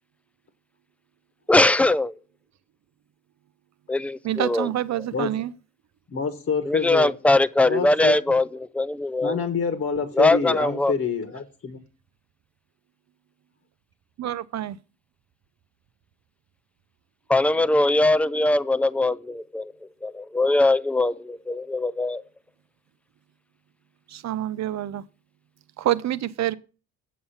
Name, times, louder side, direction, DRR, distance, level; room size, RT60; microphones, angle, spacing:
voice 1, 1.5-2.1 3.9-4.7 6.7-8.4 8.7-9.4 10.2-10.9 17.3-19.7 20.0-22.2, left 2 dB, 5° left, 0.4 m, -21 dB
voice 2, 4.2-5.5 14.2-14.8 24.1-25.0 25.8-26.5, right 12 dB, 55° right, 0.7 m, -27 dB
voice 3, 6.1-7.1 7.6-8.2 9.2-11.8, left 5 dB, 40° left, 1.4 m, -27 dB
8.4 x 7.2 x 5.7 m
cardioid pair, 95°, 34 cm